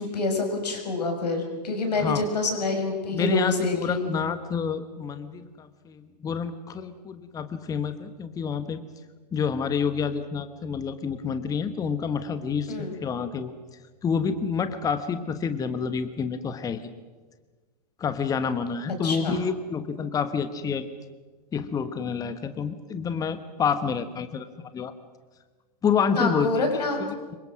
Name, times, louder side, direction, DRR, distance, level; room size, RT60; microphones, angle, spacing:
voice 1, 0.0-4.1 12.7-12.9 19.0-19.4 26.1-27.0, left 3 dB, 70° left, 3 dB, 6.2 m, -27 dB
voice 2, 3.1-8.8 9.3-13.5 14.0-16.9 18.0-20.8 21.5-24.5 24.7-24.9 25.8-26.7 27.0-27.4, left 6 dB, 15° left, 10 dB, 1.3 m, -28 dB
27.0 x 24.0 x 6.2 m, 1.4 s
figure-of-eight pair, 105°, 21 cm